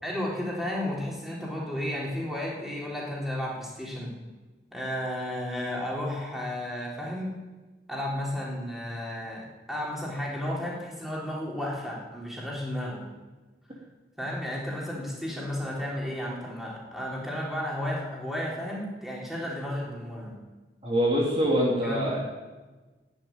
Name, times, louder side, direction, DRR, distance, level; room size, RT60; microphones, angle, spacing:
voice 1, 0.0-4.1 4.7-7.3 7.9-13.0 14.2-20.3 21.8-22.2, left 1 dB, ahead, -5 dB, 3.8 m, -33 dB
voice 2, 20.8-22.2, equal, 30° right, -4 dB, 2.7 m, -24 dB
11.5 x 10.5 x 9.4 m, 1.2 s
head